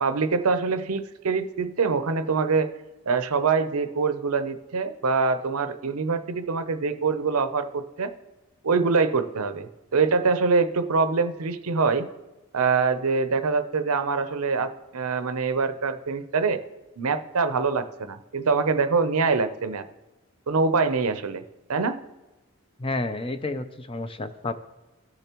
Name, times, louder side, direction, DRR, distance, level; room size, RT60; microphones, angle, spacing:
voice 1, 0.0-2.7 3.1-8.1 8.6-12.1 12.5-16.6 17.0-19.8 20.5-21.4 21.7-22.0, right 4 dB, 80° right, 11 dB, 0.7 m, -24 dB
voice 2, 22.8-24.5, left 2 dB, 25° left, 9 dB, 0.5 m, -30 dB
17.0 x 6.8 x 3.0 m, 1.1 s
head